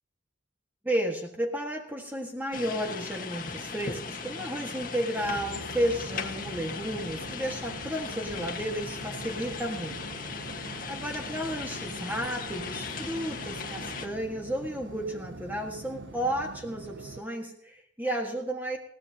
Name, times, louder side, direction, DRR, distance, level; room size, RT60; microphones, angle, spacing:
voice 1, 0.8-10.0 10.5-18.8, equal, 10° right, 1 dB, 1.6 m, -33 dB
sound 1, 2.5-14.1, left 5 dB, 50° left, 1.5 m, -38 dB
sound 2, 5.2-17.2, right 3 dB, 65° right, 0.6 m, -44 dB
20.5 x 17.0 x 2.8 m, 0.67 s
head